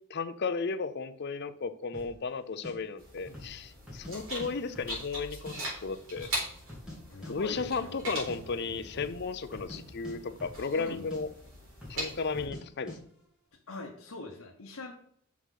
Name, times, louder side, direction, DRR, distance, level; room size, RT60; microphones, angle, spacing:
voice 1, 0.1-6.3 7.3-11.3 11.9-13.0, left 4 dB, 50° left, 12 dB, 0.5 m, -34 dB
sound 1, 1.9-2.2 2.6-2.7 3.3-3.6 3.9-4.5 4.8-5.6 5.8-5.9 6.2-7.0 7.2-7.3 7.6-7.8 8.1-8.4 8.9-9.2 9.5-10.8 11.1-11.2 11.8-12.0 12.3-12.6 12.9-13.0, left 1 dB, 5° right, 2.5 m, -45 dB
sound 2, 3.0-12.5, right 1 dB, 60° right, 4.1 m, -41 dB
voice 2, 7.1-8.0 10.8-11.1 13.7-14.9, left 3 dB, 75° left, -1 dB, 1.1 m, -42 dB
6.2 x 5.8 x 5.8 m, 0.64 s
head